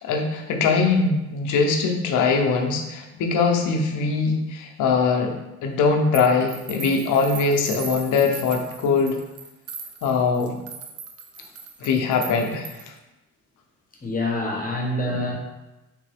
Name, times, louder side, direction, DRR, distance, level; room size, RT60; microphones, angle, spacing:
voice 1, 0.0-5.3 5.6-9.2 10.0-10.6 11.8-12.7, left 4 dB, 85° left, 3 dB, 0.7 m, -22 dB
sound 1, 6.1-13.0, right 5 dB, 50° right, 0.6 m, -39 dB
voice 2, 14.0-15.4, left 1 dB, 30° left, 0 dB, 1.0 m, -26 dB
3.6 x 3.4 x 3.4 m, 1.0 s
cardioid pair, 90°, 30 cm